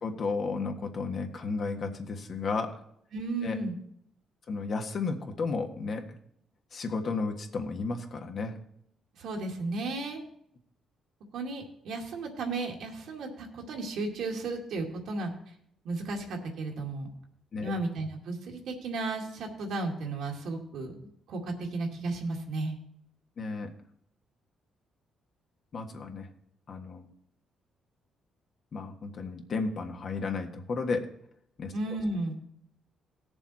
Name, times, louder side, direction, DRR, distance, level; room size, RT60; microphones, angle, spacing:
voice 1, 0.0-2.8 3.4-3.6 4.5-6.2 6.7-8.5 17.5-17.7 23.4-23.7 25.7-26.3 26.7-27.0 28.7-31.1 31.6-31.7, left 4 dB, 50° left, 4 dB, 1.5 m, -33 dB
voice 2, 3.1-3.7 9.2-10.2 11.3-15.3 15.8-17.1 17.6-20.9 21.3-22.7 31.7-32.3, right 2 dB, 75° right, 1 dB, 2.2 m, -34 dB
17.0 x 7.1 x 4.3 m, 0.71 s
cardioid pair, 90°, 0 cm